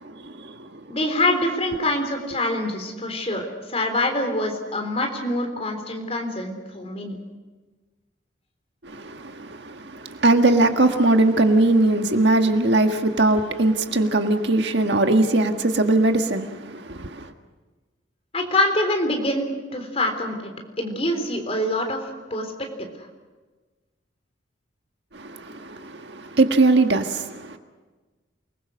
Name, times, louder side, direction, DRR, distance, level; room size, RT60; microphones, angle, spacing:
voice 1, 0.0-0.9 8.8-17.3 25.1-27.6, right 2 dB, 65° right, 6 dB, 1.6 m, -21 dB
voice 2, 0.9-7.2 18.3-22.0 22.3-22.5 22.8-22.9, left 1 dB, 30° left, 4 dB, 3.7 m, -25 dB
28.5 x 20.5 x 6.5 m, 1.3 s
head